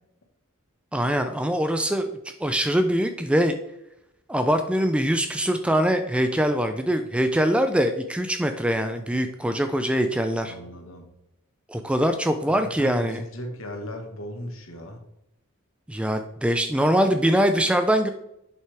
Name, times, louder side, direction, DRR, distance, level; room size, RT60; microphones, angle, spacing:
voice 1, 0.9-3.6 4.3-10.5 11.7-13.2 15.9-18.1, equal, 5° right, 7 dB, 0.4 m, -23 dB
voice 2, 10.4-11.0 12.5-15.0, left 1 dB, 65° left, 3 dB, 1.5 m, -37 dB
7.8 x 5.7 x 3.4 m, 0.82 s
head